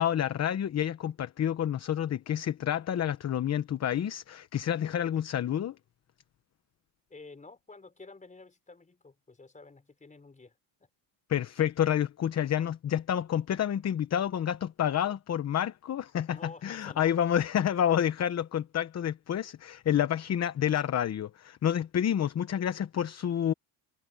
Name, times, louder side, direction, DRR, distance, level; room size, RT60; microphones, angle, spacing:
voice 1, 0.0-5.7 11.3-23.5, left 10 dB, 35° left, 1.0 m, -29 dB
voice 2, 7.1-10.9 16.3-17.1, left 3 dB, 15° left, 4.8 m, -50 dB
cardioid pair, 125°, 44 cm